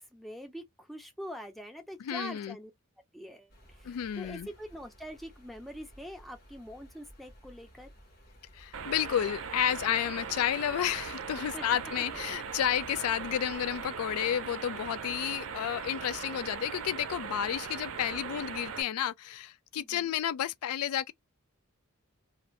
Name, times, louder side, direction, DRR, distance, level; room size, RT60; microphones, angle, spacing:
voice 1, 0.0-2.7 3.1-7.9 11.5-11.6 18.1-18.5 19.8-20.1, equal, ahead, 0.6 m, -44 dB
voice 2, 2.0-2.6 3.8-4.5 8.5-21.1, left 10 dB, 85° left, 0.3 m, -31 dB
sound 1, 3.5-13.9, equal, 45° left, 1.2 m, -56 dB
sound 2, 8.7-18.8, right 6 dB, 65° right, 0.5 m, -40 dB
2.6 x 2.5 x 3.1 m
head